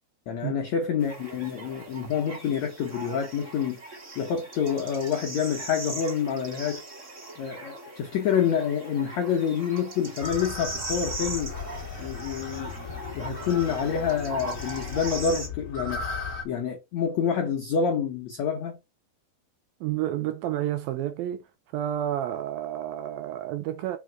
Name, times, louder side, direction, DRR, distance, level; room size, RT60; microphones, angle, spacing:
voice 1, 0.3-3.8 4.1-6.8 7.4-11.5 12.0-12.7 13.1-16.0 16.4-18.8, left 7 dB, 80° left, 1.6 m, -27 dB
sound 1, 1.0-15.5, right 3 dB, 45° right, 0.9 m, -40 dB
sound 2, 10.2-16.4, left 4 dB, 50° left, 0.9 m, -36 dB
voice 2, 19.8-21.5 21.7-24.0, right 12 dB, 80° right, 2.2 m, -30 dB
5.1 x 4.7 x 4.6 m
omnidirectional pair, 4.7 m